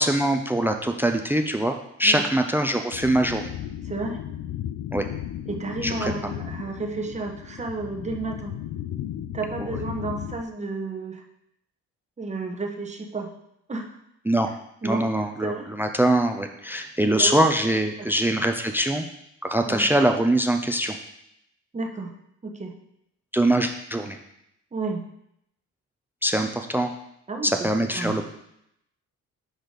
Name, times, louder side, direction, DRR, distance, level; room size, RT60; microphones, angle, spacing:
voice 1, 0.0-3.5 4.9-5.1 5.8-6.1 9.6-9.7 14.3-14.5 14.8-19.0 19.4-21.0 23.3-24.2 26.2-26.9 27.4-28.2, right 1 dB, 5° right, 6 dB, 0.4 m, -23 dB
sound 1, 2.9-10.4, left 11 dB, 85° left, 0.6 m, -35 dB
voice 2, 3.8-4.2 5.5-8.6 9.3-11.2 12.2-13.3 13.7-13.9 14.8-15.0 15.4-15.7 17.1-17.4 18.0-18.4 19.7-19.9 21.7-22.1 22.4-22.8 24.7-25.1 27.3-28.2, right 3 dB, 25° right, 2 dB, 1.0 m, -32 dB
6.3 x 4.9 x 4.0 m, 0.78 s
cardioid pair, 90°, 30 cm